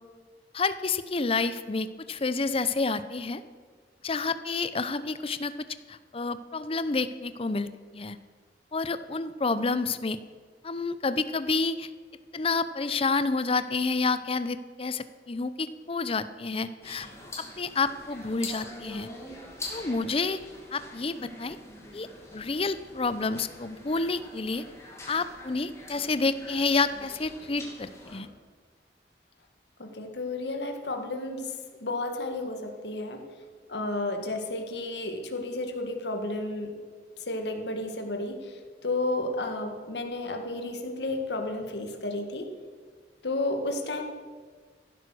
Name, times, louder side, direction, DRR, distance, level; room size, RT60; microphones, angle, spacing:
voice 1, 0.5-3.4 4.0-5.5 5.9-7.7 7.9-8.2 8.7-10.2 10.6-11.9 12.3-17.1 17.4-19.1 19.7-20.4 20.7-21.6 21.9-22.1 22.3-24.7 25.1-28.3, left 3 dB, 35° left, 13 dB, 0.7 m, -29 dB
sound 1, 16.8-28.2, left 2 dB, 15° left, 2.7 m, -44 dB
voice 2, 29.8-31.5 31.8-33.2 33.7-36.7 37.3-38.5 38.8-42.5 43.2-44.0, left 2 dB, 75° left, 4 dB, 1.8 m, -32 dB
15.0 x 11.5 x 6.3 m, 1.6 s
head